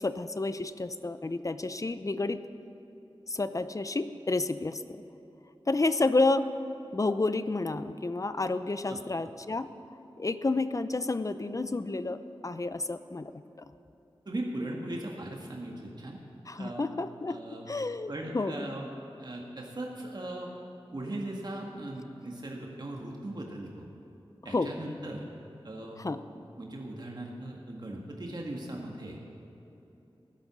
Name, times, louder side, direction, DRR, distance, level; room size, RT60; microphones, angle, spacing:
voice 1, 0.0-2.4 3.3-5.0 5.7-6.5 6.9-9.7 10.2-13.3 13.6-13.7 16.5-17.4 17.7-18.7 24.5-24.7 26.0-26.2, left 2 dB, 35° left, 12 dB, 0.6 m, -30 dB
voice 2, 14.3-16.2 16.6-16.8 17.3-17.7 18.1-18.9 19.2-20.5 20.9-23.8 24.5-25.3 25.6-26.0 26.3-29.2, right 1 dB, 50° right, -1 dB, 1.8 m, -38 dB
16.5 x 12.0 x 6.2 m, 3.0 s
wide cardioid pair, 85°, 9 cm